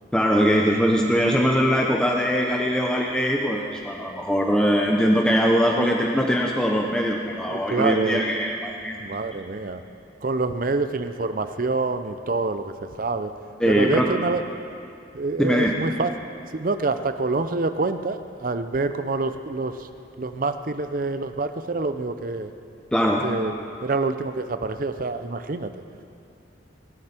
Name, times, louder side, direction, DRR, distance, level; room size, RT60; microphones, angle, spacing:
voice 1, 0.1-9.0 13.6-14.1 15.4-15.7 22.9-23.2, equal, 5° left, -1 dB, 0.7 m, -21 dB
voice 2, 7.5-8.3 9.0-9.8 10.2-13.3 13.7-14.4 15.1-16.1 16.5-19.9 20.2-22.5 23.2-23.6 23.8-25.8, right 3 dB, 45° right, 10 dB, 0.6 m, -26 dB
23.0 x 9.8 x 4.4 m, 2.5 s
head